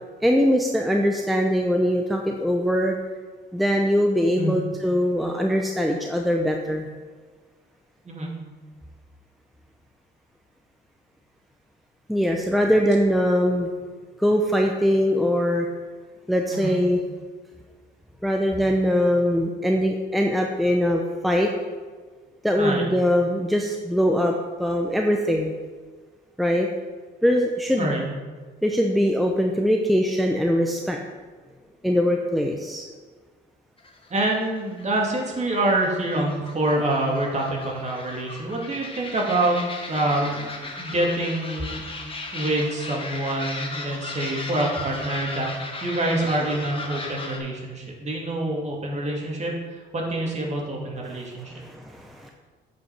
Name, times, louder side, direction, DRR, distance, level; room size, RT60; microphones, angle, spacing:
voice 1, 0.2-2.9 3.5-6.9 12.1-13.7 14.2-15.7 16.3-17.0 18.2-21.5 22.4-24.3 24.6-25.5 26.4-26.7 27.2-27.9 28.6-31.0 31.8-32.8 51.1-52.3, equal, ahead, 1 dB, 0.8 m, -22 dB
voice 2, 8.0-8.4 16.5-16.8 22.6-22.8 27.8-28.0 34.1-39.6 39.9-40.3 40.8-41.9 42.3-45.5 45.8-49.5 49.9-51.5, right 1 dB, 35° right, -2 dB, 2.4 m, -26 dB
sound 1, 33.8-47.4, left 3 dB, 25° left, 1.5 m, -37 dB
8.4 x 5.2 x 6.0 m, 1.4 s
cardioid pair, 90°, 20 cm